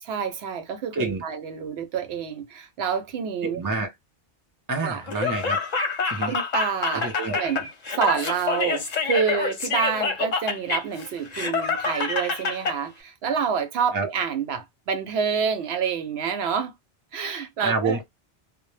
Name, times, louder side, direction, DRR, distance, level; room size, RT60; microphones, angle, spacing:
voice 1, 0.0-3.6 4.8-5.0 6.3-16.7 17.1-18.0, right 7 dB, 75° right, 0.9 m, -28 dB
voice 2, 3.4-3.9 4.7-5.6 6.1-6.3 6.9-7.4 13.9-14.1 17.6-18.0, right 3 dB, 30° right, 0.4 m, -27 dB
Laughter, 5.1-12.8, left 5 dB, 45° left, 0.7 m, -27 dB
2.1 x 2.0 x 3.1 m
omnidirectional pair, 1.1 m